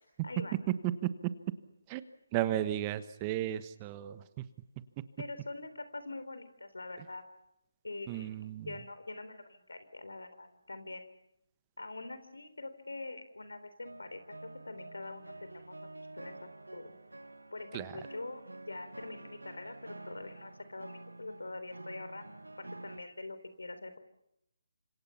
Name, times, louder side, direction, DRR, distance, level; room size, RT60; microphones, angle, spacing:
voice 1, 0.2-0.5 5.2-7.3 7.8-8.3 8.7-11.2 11.8-14.2 14.6-15.9 16.1-16.4 16.7-16.9 17.5-22.3 22.6-24.0, left 2 dB, 80° left, 11 dB, 3.8 m, -44 dB
voice 2, 2.3-4.2 7.0-7.1 8.1-8.7 17.7-18.0, right 13 dB, 25° right, 13 dB, 1.2 m, -34 dB
sound 1, 13.8-23.0, right 2 dB, 90° right, 1.8 m, -49 dB
30.0 x 26.0 x 5.8 m, 0.80 s
figure-of-eight pair, 150°, 0 cm